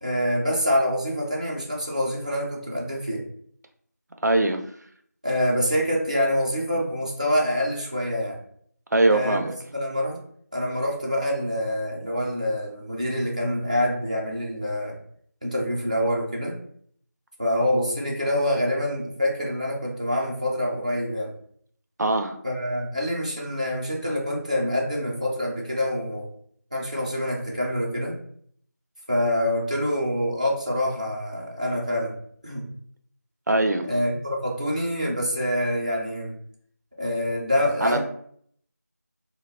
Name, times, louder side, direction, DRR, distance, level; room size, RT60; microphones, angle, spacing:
voice 1, 0.0-3.2 5.2-8.4 9.1-10.2 10.5-14.9 15.4-16.5 17.4-21.3 22.4-26.3 26.7-28.2 29.1-32.1 32.4-32.7 33.9-36.3 37.0-38.0, left 1 dB, 25° right, -4 dB, 0.4 m, -26 dB
voice 2, 4.2-4.6 8.9-9.5 22.0-22.4 33.5-33.9 37.8-38.0, right 2 dB, 85° right, 5 dB, 0.4 m, -21 dB
2.4 x 2.0 x 3.4 m, 0.63 s
figure-of-eight pair, 175°, 9 cm